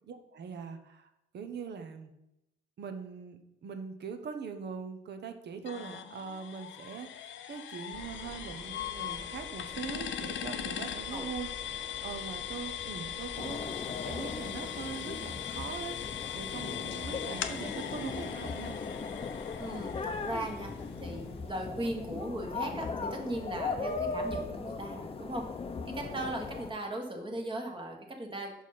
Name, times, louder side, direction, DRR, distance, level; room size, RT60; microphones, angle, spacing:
voice 1, 0.1-2.1 2.8-11.5 11.8-18.8, right 6 dB, 60° right, 7 dB, 1.0 m, -42 dB
sound 1, 5.7-21.3, left 10 dB, 70° left, 0.6 m, -40 dB
sound 2, 7.9-13.4, equal, ahead, 1.7 m, -50 dB
sound 3, 13.4-26.7, left 4 dB, 30° left, 0.7 m, -38 dB
voice 2, 19.6-25.5 25.9-28.5, right 1 dB, 25° right, 2 dB, 1.5 m, -38 dB
5.6 x 4.8 x 5.7 m, 0.87 s
cardioid pair, 90°, 20 cm